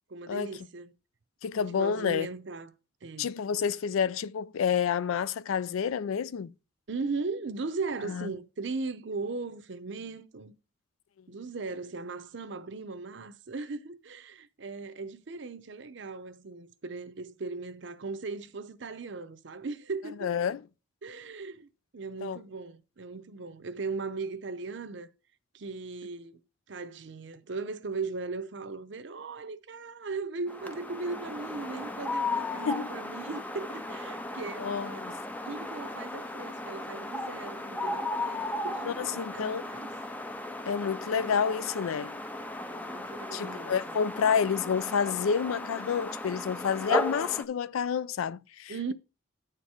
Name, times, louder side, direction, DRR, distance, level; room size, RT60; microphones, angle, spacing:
voice 1, 0.1-0.9 1.6-2.7 3.0-3.3 6.9-10.6 11.3-20.3 21.0-25.1 25.5-26.4 26.7-39.9 42.6-44.0 48.7-48.9, right 4 dB, 60° right, 0.7 m, -38 dB
voice 2, 1.4-2.3 3.2-6.5 8.0-8.3 20.2-20.6 22.2-22.4 32.7-32.9 34.6-35.2 38.8-39.6 40.7-42.2 43.3-48.9, left 7 dB, 90° left, 0.4 m, -29 dB
sound 1, 30.5-47.4, left 2 dB, 10° left, 0.4 m, -36 dB
9.2 x 4.5 x 4.8 m
head